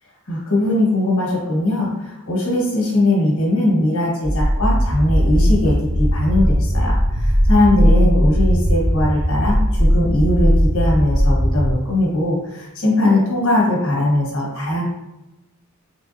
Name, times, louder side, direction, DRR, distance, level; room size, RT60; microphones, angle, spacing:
voice 1, 0.3-14.8, left 1 dB, 65° left, -2 dB, 1.2 m, -20 dB
sound 1, 4.2-11.7, equal, 20° right, 0.5 m, -17 dB
3.6 x 3.4 x 2.6 m, 0.97 s
head